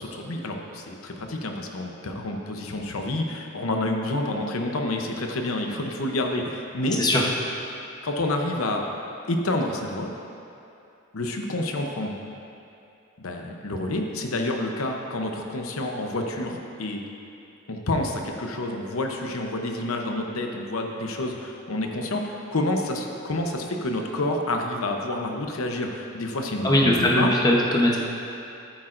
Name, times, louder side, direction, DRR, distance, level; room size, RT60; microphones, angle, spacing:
voice 1, 0.0-7.0 8.0-8.9 9.3-10.1 11.1-12.2 13.2-17.0 17.7-27.3, left 1 dB, 85° left, 2 dB, 0.8 m, -28 dB
voice 2, 7.0-7.3 26.6-28.0, left 1 dB, 20° left, -2 dB, 0.9 m, -20 dB
13.5 x 8.7 x 2.6 m, 2.7 s
head